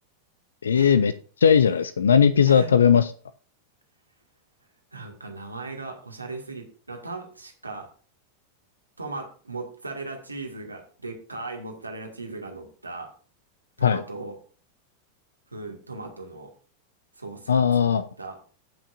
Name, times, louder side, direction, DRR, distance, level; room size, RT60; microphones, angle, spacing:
voice 1, 0.6-1.1 1.4-3.1 13.8-14.0 17.5-18.0, left 7 dB, 70° left, 15 dB, 0.5 m, -18 dB
voice 2, 4.9-7.9 9.0-13.1 13.8-14.4 15.5-16.5 17.2-18.4, right 3 dB, 80° right, 3 dB, 2.0 m, -38 dB
18.0 x 6.2 x 2.6 m, 0.41 s
figure-of-eight pair, 90°, 0 cm